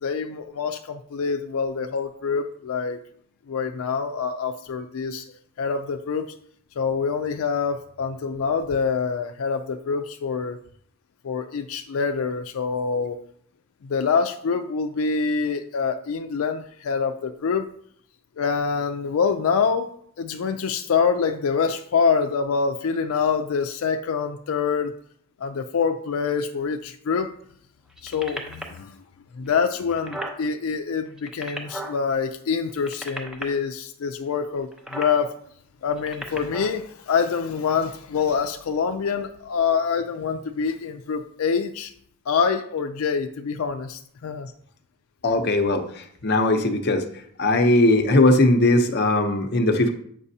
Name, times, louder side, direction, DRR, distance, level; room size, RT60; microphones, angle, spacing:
voice 1, 0.0-3.0 3.5-5.3 5.6-6.3 6.8-10.6 11.2-13.2 13.8-17.7 18.4-19.9 20.2-24.9 25.4-27.3 28.0-29.0 29.3-35.4 35.8-41.9 42.3-44.5, left 5 dB, 85° left, 7 dB, 0.4 m, -25 dB
sound 1, 27.9-28.8 29.5-29.6 29.8-30.4 31.1-32.0 32.7-33.4 34.7-35.1 35.9-36.7 37.5-37.6, equal, 5° right, 0.8 m, -35 dB
voice 2, 45.2-47.0 47.4-49.9, left 2 dB, 50° left, 6 dB, 0.8 m, -19 dB
8.3 x 5.9 x 2.7 m, 0.65 s
head